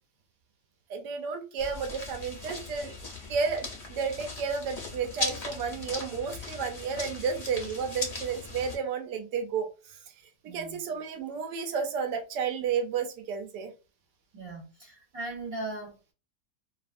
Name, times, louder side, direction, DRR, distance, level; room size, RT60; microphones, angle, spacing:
voice 1, 0.9-2.9 3.3-10.0 10.4-13.7, right 6 dB, 85° right, 5 dB, 1.2 m, -32 dB
sound 1, 1.6-8.8, left 3 dB, 45° left, 0.5 m, -38 dB
voice 2, 10.5-10.8 14.3-16.1, right 2 dB, 60° right, -2 dB, 1.2 m, -39 dB
2.7 x 2.4 x 2.4 m, 0.32 s
omnidirectional pair, 1.8 m